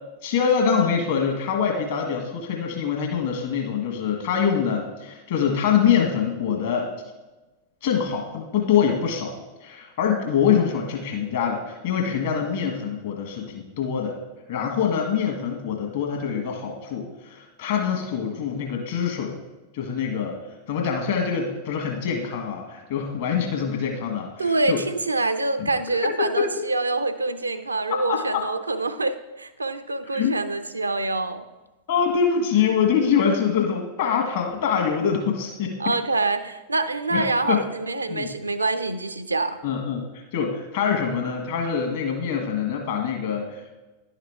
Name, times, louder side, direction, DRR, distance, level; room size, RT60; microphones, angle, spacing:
voice 1, 0.2-6.9 7.8-14.1 14.5-19.4 19.7-20.4 20.7-24.8 25.6-25.7 26.2-26.3 27.9-28.5 30.1-30.3 31.9-35.8 37.1-37.6 38.1-38.3 39.6-43.7, left 7 dB, 55° left, 2 dB, 1.5 m, -24 dB
voice 2, 24.4-31.5 35.8-39.6, right 3 dB, 80° right, 10 dB, 0.5 m, -26 dB
11.0 x 5.8 x 3.5 m, 1.1 s
figure-of-eight pair, 90°, 0 cm